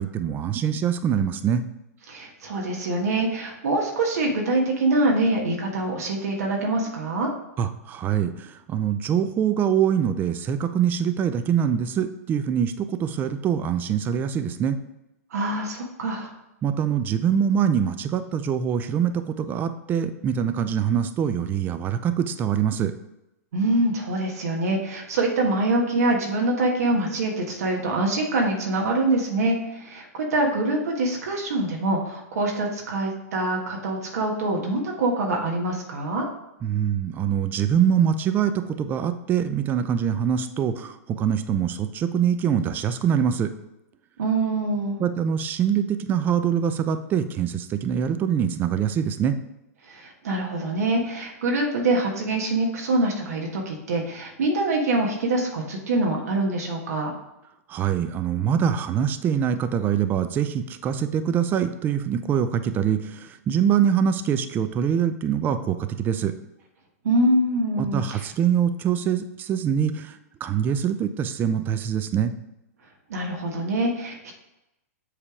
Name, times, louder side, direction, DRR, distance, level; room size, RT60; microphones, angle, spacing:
voice 1, 0.0-1.6 7.6-14.8 16.6-22.9 36.6-43.5 45.0-49.4 57.7-66.3 67.8-72.3, right 8 dB, 25° right, 10 dB, 0.4 m, -24 dB
voice 2, 2.1-7.3 15.3-16.3 23.5-36.3 44.2-45.0 49.9-57.1 67.0-68.3 73.1-74.4, right 2 dB, 80° right, 0 dB, 1.4 m, -24 dB
7.3 x 3.4 x 4.8 m, 0.91 s
hypercardioid pair, 130°, 8 cm